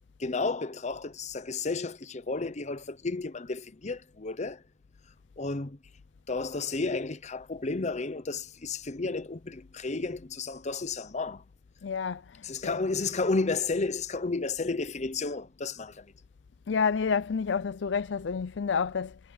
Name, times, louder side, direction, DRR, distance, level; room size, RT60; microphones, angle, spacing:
voice 1, 0.2-4.6 5.4-5.8 6.3-11.4 12.4-16.1, left 3 dB, 40° left, 0.8 m, -32 dB
voice 2, 11.8-12.8 16.7-19.2, left 5 dB, 70° left, 0.5 m, -29 dB
head